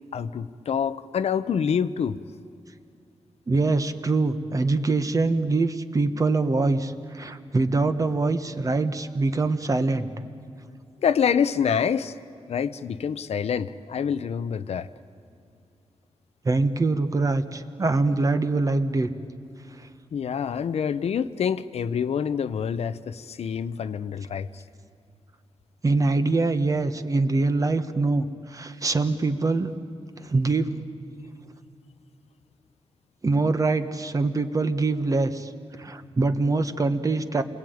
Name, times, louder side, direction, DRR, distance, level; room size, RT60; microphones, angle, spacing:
voice 1, 0.0-2.2 11.0-12.1 12.5-14.9 20.1-24.6, left 7 dB, 75° left, 13 dB, 0.8 m, -26 dB
voice 2, 3.5-10.1 16.4-19.1 19.7-19.9 25.8-29.7 30.2-30.8 33.2-35.5 35.8-37.4, right 3 dB, 30° right, 9 dB, 1.3 m, -24 dB
28.0 x 21.5 x 9.4 m, 2.5 s
wide cardioid pair, 130°, 11 cm